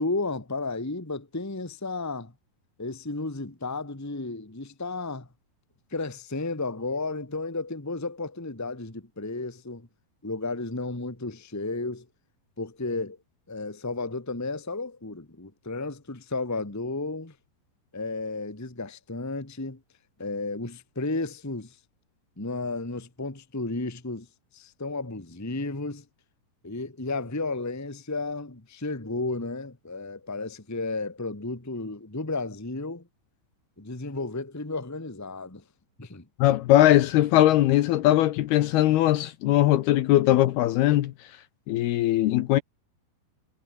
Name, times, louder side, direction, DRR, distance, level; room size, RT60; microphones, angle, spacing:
voice 1, 0.0-2.3 2.8-5.3 5.9-9.9 10.2-12.0 12.6-13.2 13.5-17.3 17.9-19.8 20.2-21.8 22.4-24.3 24.5-26.0 26.6-33.1 33.8-35.6 36.0-36.3, left 3 dB, 5° left, 1.2 m, -33 dB
voice 2, 36.4-41.1 41.7-42.6, left 14 dB, 75° left, 2.6 m, -20 dB
omnidirectional pair, 5.1 m